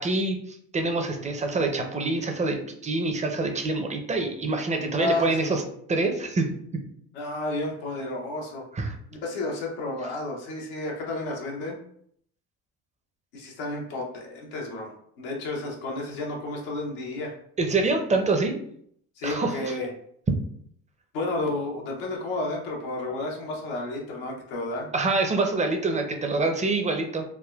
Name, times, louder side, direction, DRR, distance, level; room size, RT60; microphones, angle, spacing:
voice 1, 0.0-5.6 5.9-6.5 8.7-8.9 17.6-18.5 19.2-19.5 24.9-27.2, right 3 dB, 20° right, 4 dB, 0.5 m, -26 dB
voice 2, 5.0-5.5 7.1-8.7 9.1-11.8 13.3-17.3 19.2-19.9 21.1-24.9, left 2 dB, 85° left, -1 dB, 0.9 m, -31 dB
3.5 x 2.1 x 2.3 m, 0.65 s
supercardioid pair, 70°, 36 cm